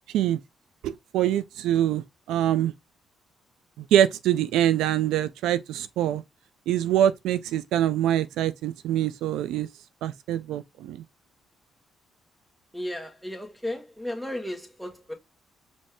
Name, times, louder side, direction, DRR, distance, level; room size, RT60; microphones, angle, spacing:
voice 1, 0.8-2.7 3.8-6.2 6.7-9.7 10.0-11.0, right 11 dB, 90° right, 0.4 m, -24 dB
voice 2, 12.7-15.1, left 1 dB, ahead, 1.3 m, -34 dB
5.3 x 2.6 x 3.3 m
cardioid pair, 90°, 0 cm